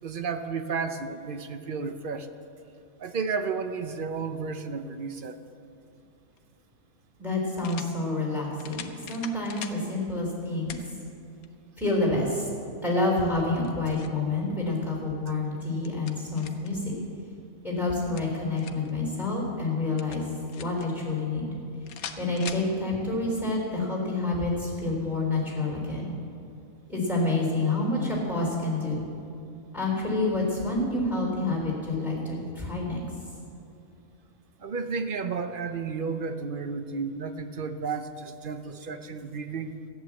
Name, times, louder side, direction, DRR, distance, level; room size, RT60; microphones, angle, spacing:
voice 1, 0.0-2.3 3.0-5.4 34.6-39.7, right 5 dB, 50° right, 8 dB, 0.7 m, -32 dB
sound 1, 6.3-6.4 7.6-7.9 8.6-9.8 10.7-10.9 11.4-11.5 13.4-14.2 15.5-16.7 17.9-18.9 20.0-20.9 21.9-22.7, left 8 dB, 85° left, 1.3 m, -41 dB
voice 2, 7.2-10.8 11.8-12.5 12.8-16.9 17.6-20.3 20.6-21.5 22.2-26.1 26.9-29.0 29.7-33.0, left 2 dB, ahead, -2 dB, 3.8 m, -28 dB
14.5 x 9.1 x 7.6 m, 2.6 s
omnidirectional pair, 1.5 m